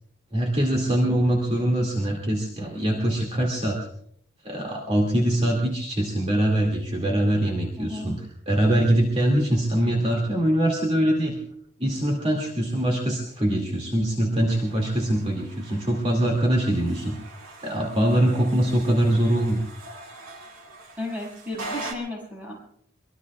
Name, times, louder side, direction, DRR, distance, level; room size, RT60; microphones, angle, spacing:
voice 1, 0.3-3.8 4.4-8.2 8.5-11.4 11.8-17.2 17.6-19.6, right 1 dB, 30° right, -1 dB, 2.4 m, -23 dB
voice 2, 0.8-1.2 7.8-8.1 21.0-22.7, left 1 dB, 5° right, -3 dB, 6.9 m, -34 dB
sound 1, 14.5-21.9, right 2 dB, 90° right, 2.5 m, -42 dB
24.0 x 20.5 x 2.4 m, 0.67 s
head